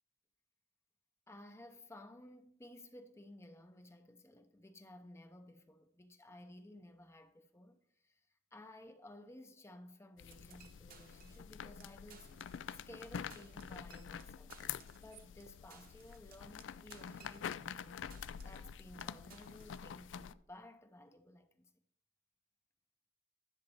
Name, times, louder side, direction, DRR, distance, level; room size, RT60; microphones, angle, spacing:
voice 1, 1.3-12.6 12.9-14.6 15.0-18.1 18.4-21.7, left 1 dB, 15° left, 0.6 m, -56 dB
sound 1, 10.2-20.3, left 8 dB, 90° left, 0.4 m, -47 dB
sound 2, 10.3-11.5 11.8-11.9 12.1-13.0 13.3-17.8 18.1-18.7 19.0-19.8, right 7 dB, 50° right, 1.0 m, -62 dB
11.0 x 6.7 x 4.1 m
head